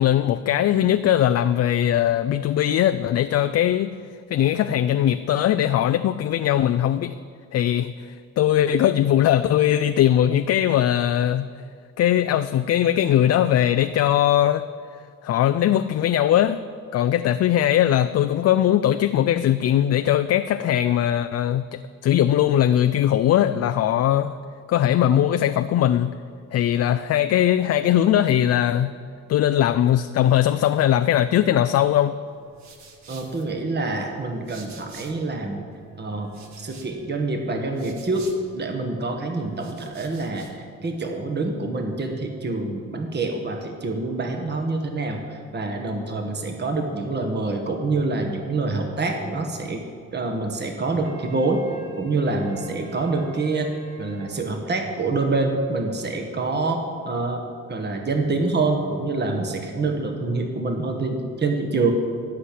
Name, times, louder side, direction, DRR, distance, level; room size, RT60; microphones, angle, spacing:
voice 1, 0.0-3.9 4.3-7.1 7.5-11.5 12.0-14.6 15.2-16.6 16.9-24.4 24.7-26.1 26.5-28.9 29.3-32.1, left 11 dB, 55° left, 10 dB, 0.5 m, -20 dB
sound 1, 32.3-35.4 35.7-38.9 39.4-40.6, right 4 dB, 65° right, 1.8 m, -49 dB
voice 2, 33.1-35.6 36.0-38.3 38.5-49.8 50.1-51.6 51.9-61.9, right 3 dB, 35° right, 3 dB, 1.5 m, -26 dB
Wind instrument woodwind instrument, 51.0-54.4, right 1 dB, 80° right, 2.6 m, -46 dB
16.5 x 6.0 x 8.4 m, 2.3 s
cardioid pair, 90°, 30 cm